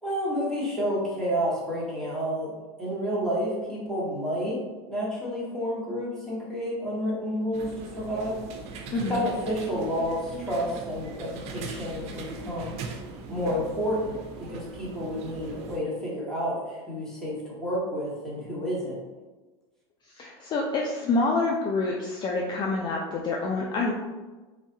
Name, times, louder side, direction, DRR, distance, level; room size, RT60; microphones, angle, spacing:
voice 1, 0.0-2.5 2.8-4.6 4.9-8.4 9.1-12.7 13.3-19.0, equal, 5° left, -7 dB, 1.2 m, -30 dB
sound 1, 7.5-15.8, right 4 dB, 50° right, 0.5 m, -40 dB
voice 2, 8.9-9.2 20.0-23.9, left 3 dB, 30° left, -1 dB, 0.4 m, -27 dB
3.1 x 2.3 x 2.8 m, 1.2 s
supercardioid pair, 105°, 14 cm